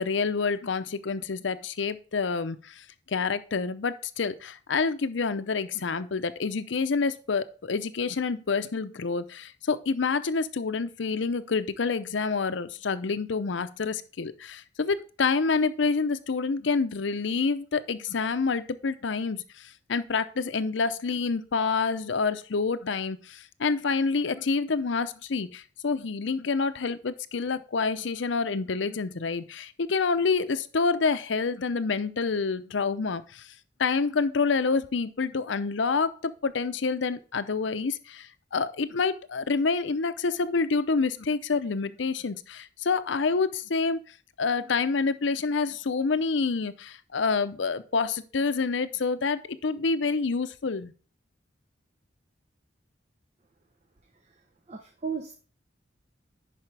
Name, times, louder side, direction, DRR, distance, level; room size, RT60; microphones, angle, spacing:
voice 1, 0.0-33.5 33.8-44.0 44.4-50.9, left 4 dB, 75° left, 12 dB, 0.6 m, -28 dB
voice 2, 54.7-55.3, right 6 dB, 35° right, 5 dB, 0.8 m, -34 dB
10.5 x 5.0 x 3.3 m, 0.38 s
head